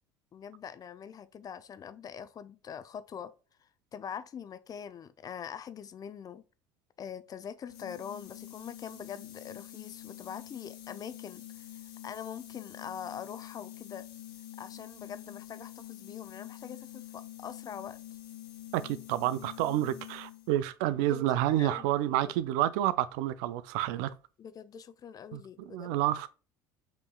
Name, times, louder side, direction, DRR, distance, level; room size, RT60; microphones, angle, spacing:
voice 1, 0.3-3.3 3.9-6.4 7.0-11.6 12.0-14.0 14.6-18.0 21.1-22.5 24.4-26.0, left 8 dB, 35° left, 0.5 m, -43 dB
sound 1, 7.7-20.6, left 13 dB, 75° left, 1.0 m, -47 dB
voice 2, 18.7-24.1 25.3-25.4 25.7-26.3, right 13 dB, 70° right, 0.4 m, -29 dB
5.3 x 3.0 x 2.2 m
hypercardioid pair, 75°, 10 cm